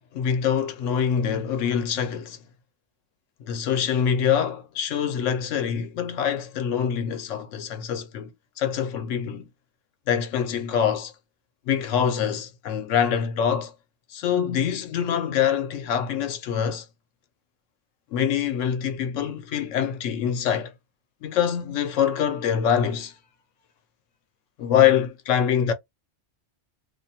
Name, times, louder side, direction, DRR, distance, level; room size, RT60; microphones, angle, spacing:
voice 1, 0.1-2.4 3.4-8.3 8.6-9.5 10.1-11.1 11.7-13.7 14.1-16.9 18.1-20.7 21.2-23.1 24.6-25.7, left 8 dB, 80° left, 1.0 m, -24 dB
2.5 x 2.2 x 2.7 m
omnidirectional pair, 1.3 m